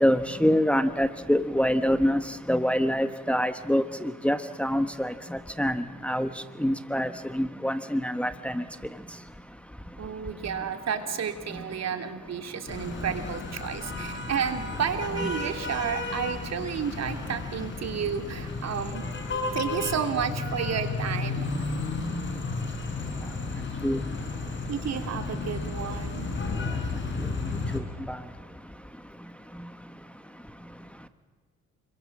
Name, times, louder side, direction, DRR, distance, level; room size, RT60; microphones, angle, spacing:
voice 1, 0.0-2.2 2.5-6.3 6.6-7.1 7.3-8.6 23.8-24.0 27.7-27.8 28.1-28.2, equal, 5° left, 9 dB, 1.3 m, -25 dB
voice 2, 10.0-19.0 19.5-21.5 24.7-26.3, right 7 dB, 60° right, 6 dB, 3.2 m, -31 dB
sound 1, 12.7-27.8, left 3 dB, 40° left, 5.4 m, -33 dB
29.5 x 23.0 x 7.4 m, 1.5 s
cardioid pair, 90°, 30 cm